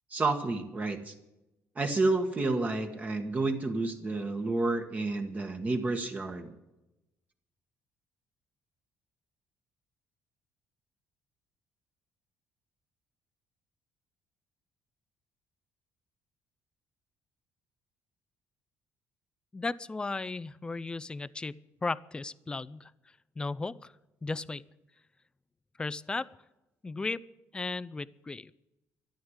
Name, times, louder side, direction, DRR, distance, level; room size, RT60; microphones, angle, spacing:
voice 1, 0.1-1.1 1.7-6.5, right 3 dB, 25° right, 4 dB, 1.4 m, -30 dB
voice 2, 19.5-22.9 23.4-23.9 24.2-24.6 25.8-26.3 26.8-27.2 27.5-28.5, left 3 dB, 15° left, 19 dB, 0.4 m, -35 dB
13.0 x 11.0 x 8.0 m, 0.96 s
cardioid pair, 135°, 6 cm